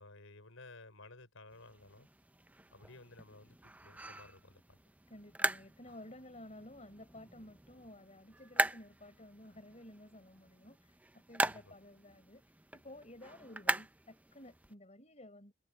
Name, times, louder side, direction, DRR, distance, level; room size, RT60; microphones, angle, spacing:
voice 1, 0.0-2.1 2.7-4.8 11.4-11.8, left 2 dB, 75° left, 5.6 m, -55 dB
sound 1, 1.5-14.7, right 2 dB, 5° right, 0.5 m, -40 dB
voice 2, 5.1-15.5, left 1 dB, 35° left, 5.1 m, -54 dB
head